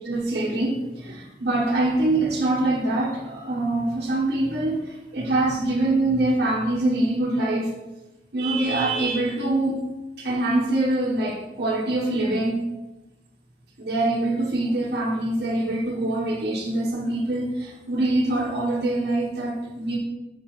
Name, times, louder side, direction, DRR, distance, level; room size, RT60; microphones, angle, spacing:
voice 1, 0.0-7.7 8.3-9.8 10.2-12.6 13.8-20.0, right 2 dB, 65° right, -6 dB, 1.2 m, -24 dB
7.1 x 6.5 x 3.2 m, 1.0 s
head